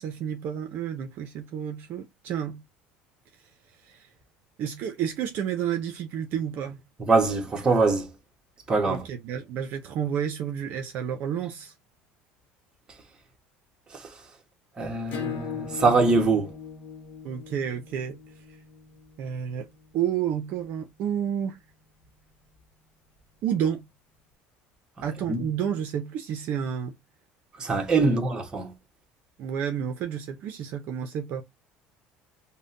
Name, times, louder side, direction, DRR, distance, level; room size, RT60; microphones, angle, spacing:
voice 1, 0.0-2.6 3.8-4.1 4.6-6.8 8.8-11.7 17.2-18.2 18.5-18.6 19.2-21.6 23.4-23.9 25.0-26.9 28.0-28.2 29.4-31.4, right 8 dB, 55° right, 0.6 m, -30 dB
voice 2, 7.0-8.1 8.7-9.0 13.9-14.0 14.8-16.5 25.3-25.4 27.6-28.7, right 3 dB, 20° right, 1.1 m, -23 dB
Acoustic guitar / Strum, 15.1-20.3, left 7 dB, 50° left, 1.0 m, -39 dB
5.4 x 2.2 x 2.6 m
cardioid pair, 145°, 4 cm